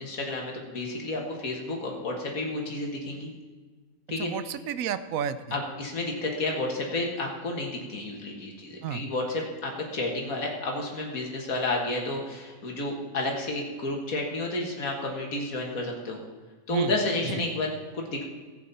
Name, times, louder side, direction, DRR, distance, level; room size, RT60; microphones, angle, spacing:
voice 1, 0.0-3.3 4.1-4.3 5.5-16.2 16.7-18.2, left 2 dB, 80° left, 0 dB, 2.1 m, -31 dB
voice 2, 4.2-5.6 8.8-9.1 16.7-16.9 17.2-17.4, right 9 dB, 75° right, 13 dB, 1.0 m, -32 dB
15.0 x 8.6 x 4.2 m, 1.4 s
omnidirectional pair, 1.5 m